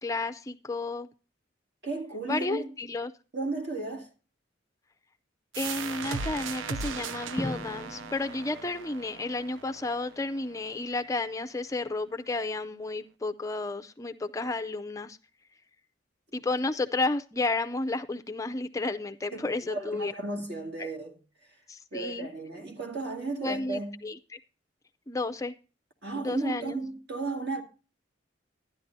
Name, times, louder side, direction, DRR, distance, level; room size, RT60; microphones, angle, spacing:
voice 1, 0.0-1.1 2.3-3.1 5.6-15.2 16.3-20.1 20.8-20.9 21.7-22.3 23.4-24.2 25.1-25.5 26.1-26.8, left 2 dB, 15° left, 0.4 m, -32 dB
voice 2, 1.8-2.7 3.3-4.1 19.3-21.1 21.9-24.0 26.0-27.6, right 3 dB, 60° right, 2.2 m, -34 dB
sound 1, 5.5-10.9, right 5 dB, 85° right, 0.5 m, -38 dB
Drum, 7.4-9.3, left 1 dB, 10° right, 1.5 m, -40 dB
13.0 x 10.5 x 2.6 m
head